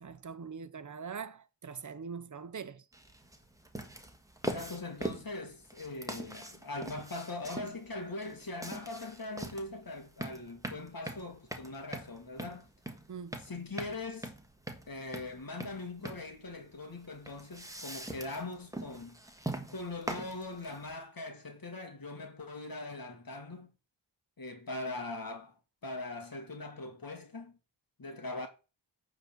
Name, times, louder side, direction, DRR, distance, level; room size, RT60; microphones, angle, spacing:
voice 1, 0.0-2.9 13.1-13.4, right 6 dB, 40° right, 0.9 m, -43 dB
sound 1, 2.9-21.0, right 1 dB, 5° right, 1.7 m, -43 dB
voice 2, 4.4-12.7 13.4-14.3 14.9-19.2 19.7-23.7 24.4-25.6 25.8-27.6 28.0-28.5, left 2 dB, 50° left, 2.0 m, -41 dB
9.0 x 4.0 x 6.8 m
cardioid pair, 60°, 45 cm